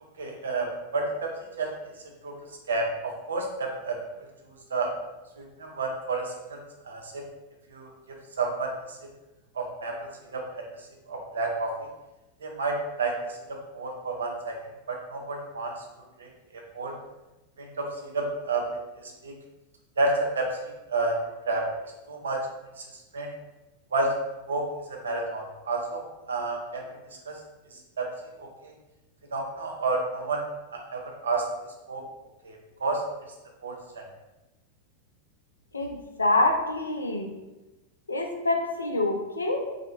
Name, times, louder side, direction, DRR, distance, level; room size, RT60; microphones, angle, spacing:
voice 1, 0.2-1.3 1.6-1.8 2.2-2.3 2.7-4.0 4.7-4.9 5.4-6.6 6.8-7.2 7.7-7.9 8.4-9.0 9.6-10.0 10.3-10.6 11.1-11.7 12.4-13.2 13.5-14.6 14.9-15.7 16.2-16.3 16.7-16.9 17.6-17.9 18.1-18.7 19.0-19.3 20.0-21.2 21.5-21.6 22.1-22.4 22.8-22.9 23.1-23.3 23.9-24.1 24.5-26.9 27.3-27.4 27.7-28.1 28.4-28.7 29.3-30.5 30.7-31.5 31.9-32.0 32.4-32.6 32.8-33.0 33.6-34.0, right 3 dB, 70° right, 1 dB, 0.4 m, -30 dB
voice 2, 35.7-37.3 38.1-39.7, left 2 dB, 75° left, 3 dB, 0.3 m, -26 dB
2.3 x 2.1 x 2.9 m, 1.0 s
figure-of-eight pair, 90°, 0 cm